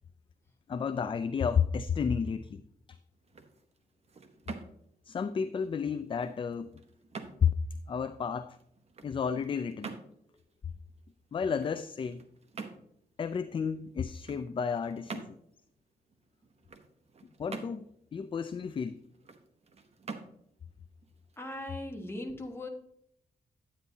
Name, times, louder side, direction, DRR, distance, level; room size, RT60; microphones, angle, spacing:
voice 1, 0.7-2.6 2.9-3.0 5.1-6.7 7.4-7.5 7.9-8.6 9.0-10.0 11.3-12.3 13.2-15.4 17.4-17.8 18.1-19.0, left 6 dB, 35° left, 11 dB, 0.4 m, -31 dB
sound 1, 3.1-22.0, right 4 dB, 45° right, 0.9 m, -48 dB
voice 2, 21.4-22.7, left 1 dB, 15° left, 3 dB, 1.4 m, -39 dB
9.8 x 8.9 x 2.7 m, 0.72 s
wide cardioid pair, 115°, 16 cm